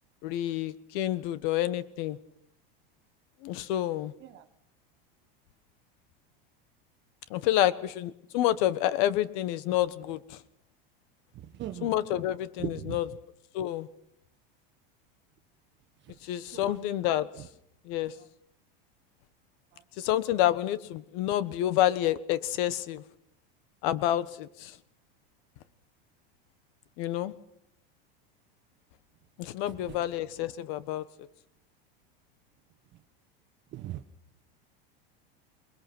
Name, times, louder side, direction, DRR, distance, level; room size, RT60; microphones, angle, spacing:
voice 1, 0.2-2.2 3.4-4.1 7.3-10.4 11.8-13.1 13.5-13.9 16.2-17.3 17.8-18.1 20.0-23.0 23.8-24.8 27.0-27.3 29.4-31.0, left 13 dB, 60° left, 15 dB, 1.3 m, -28 dB
voice 2, 11.4-11.9 12.6-13.0 16.5-16.7 33.7-34.0, right 13 dB, 40° right, 6 dB, 1.3 m, -38 dB
23.0 x 21.0 x 6.1 m, 0.78 s
supercardioid pair, 125°, 29 cm